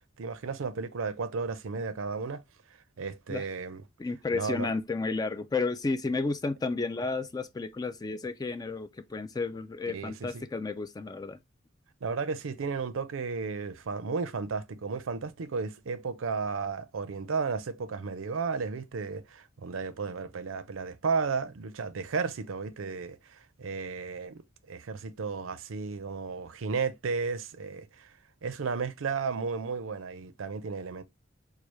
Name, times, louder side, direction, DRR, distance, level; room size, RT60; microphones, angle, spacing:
voice 1, 0.2-2.4 3.0-3.8 4.3-4.7 9.8-10.4 12.0-28.1 28.4-31.0, right 5 dB, 80° right, 0.5 m, -33 dB
voice 2, 4.0-11.4, left 3 dB, 20° left, 0.3 m, -32 dB
4.7 x 2.3 x 3.0 m
head